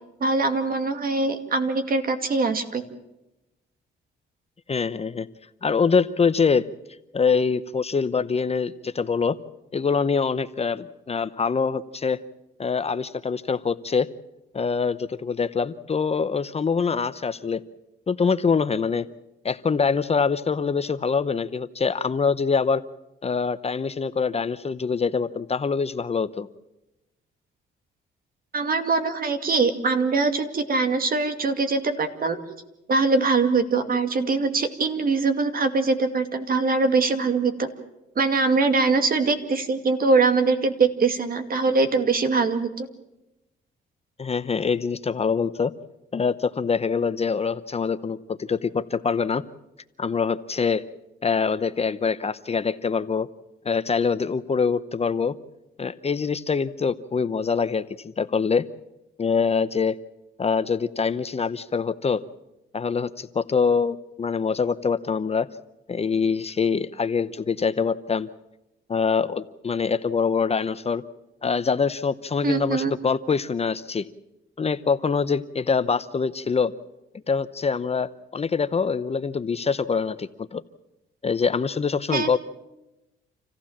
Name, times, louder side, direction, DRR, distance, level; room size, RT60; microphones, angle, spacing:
voice 1, 0.2-2.8 28.5-32.4 32.9-37.7 38.2-42.9 72.4-72.9 82.1-82.4, right 4 dB, 45° right, 7 dB, 2.4 m, -22 dB
voice 2, 4.7-5.3 5.6-6.7 7.1-9.4 9.7-12.2 12.6-14.1 14.5-17.6 18.1-19.1 19.4-22.8 23.2-26.5 44.2-45.7 46.1-49.4 50.0-50.8 51.2-53.3 53.6-55.3 55.8-58.6 59.2-60.0 60.4-62.2 62.7-65.5 65.9-68.3 68.9-71.0 71.4-74.1 74.6-76.7 77.3-80.6 81.2-82.4, left 5 dB, 30° left, 13 dB, 0.8 m, -24 dB
27.5 x 15.5 x 7.4 m, 0.95 s
cardioid pair, 90°, 20 cm